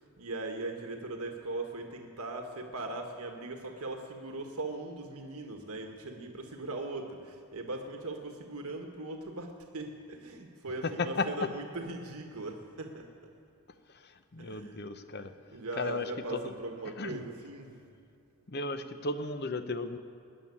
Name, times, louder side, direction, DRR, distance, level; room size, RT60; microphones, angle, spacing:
voice 1, 0.0-13.1 14.4-14.9 15.2-17.8, right 2 dB, 85° right, 3 dB, 1.4 m, -40 dB
voice 2, 10.8-11.3 13.9-15.3 15.8-16.5 17.0-17.2 18.5-20.0, left 3 dB, 45° left, 10 dB, 0.8 m, -35 dB
20.5 x 7.3 x 9.8 m, 2.5 s
head